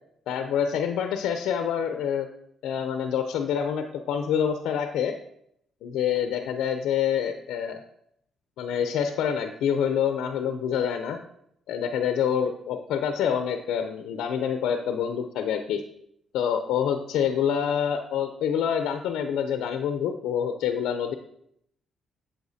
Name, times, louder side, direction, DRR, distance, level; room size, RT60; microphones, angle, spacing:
voice 1, 0.3-2.3 2.6-5.1 5.8-7.8 8.6-11.2 11.7-15.8 16.3-21.1, left 8 dB, 85° left, 7 dB, 0.5 m, -26 dB
8.0 x 7.5 x 2.7 m, 0.73 s
cardioid pair, 90°, 0 cm